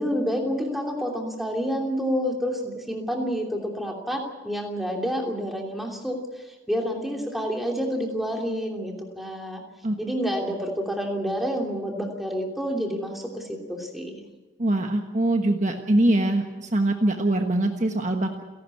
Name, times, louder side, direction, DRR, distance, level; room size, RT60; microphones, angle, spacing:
voice 1, 0.0-9.6 10.0-14.2, equal, ahead, 0 dB, 2.9 m, -29 dB
voice 2, 14.6-18.4, right 1 dB, 35° right, 4 dB, 1.3 m, -23 dB
29.5 x 12.0 x 8.5 m, 1.2 s
head